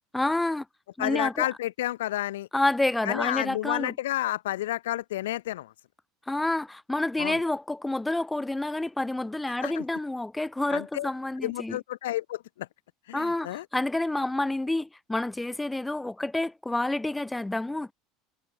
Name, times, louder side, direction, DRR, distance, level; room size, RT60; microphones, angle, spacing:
voice 1, 0.1-0.6 1.0-1.5 2.5-3.9 6.3-11.8 13.1-17.9, left 2 dB, 10° left, 1.7 m, -28 dB
voice 2, 1.0-2.5 3.1-5.7 7.2-7.4 9.6-9.8 10.7-11.1 11.4-12.7 13.1-13.6, left 14 dB, 65° left, 2.2 m, -30 dB
figure-of-eight pair, 70°, 0 cm